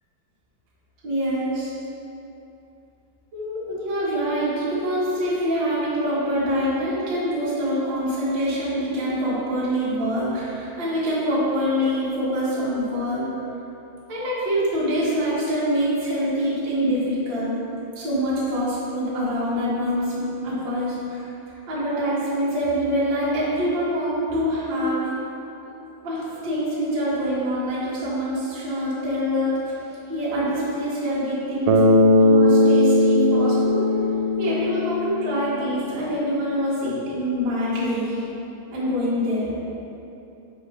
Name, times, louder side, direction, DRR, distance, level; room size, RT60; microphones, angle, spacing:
voice 1, 1.0-1.7 3.3-13.2 14.1-17.5 17.9-20.1 20.4-25.1 26.0-29.8 30.1-31.8 32.2-33.9 34.3-38.2 38.7-39.5, equal, 50° right, -10 dB, 1.3 m, -25 dB
Bass guitar, 31.7-35.7, left 1 dB, 85° right, 2.4 m, -18 dB
6.7 x 3.2 x 5.3 m, 2.9 s
omnidirectional pair, 4.4 m